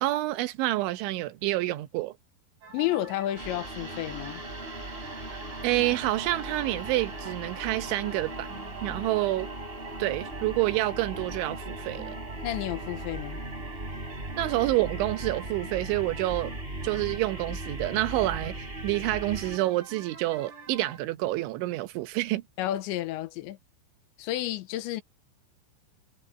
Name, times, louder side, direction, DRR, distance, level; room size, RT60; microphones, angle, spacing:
voice 1, 0.0-2.1 5.6-8.5 8.8-9.5 10.0-12.2 14.4-16.6 16.8-22.4, right 17 dB, 85° right, 3.5 m, -28 dB
sound 1, 2.6-21.0, right 4 dB, 45° right, 5.5 m, -47 dB
voice 2, 2.7-4.4 12.4-13.4 22.6-23.6 24.2-25.0, left 14 dB, 85° left, 3.2 m, -31 dB
sound 2, 3.4-19.6, right 1 dB, 10° right, 4.5 m, -38 dB
omnidirectional pair, 5.3 m